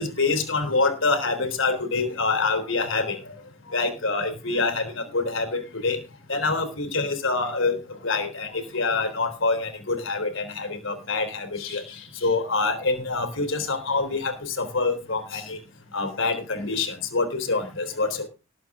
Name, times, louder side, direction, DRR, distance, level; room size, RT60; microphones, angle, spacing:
voice 1, 0.0-3.4 3.7-6.0 6.3-7.8 8.0-15.6 15.9-18.3, left 3 dB, 65° left, 9 dB, 3.6 m, -26 dB
18.5 x 8.5 x 3.6 m, 0.30 s
head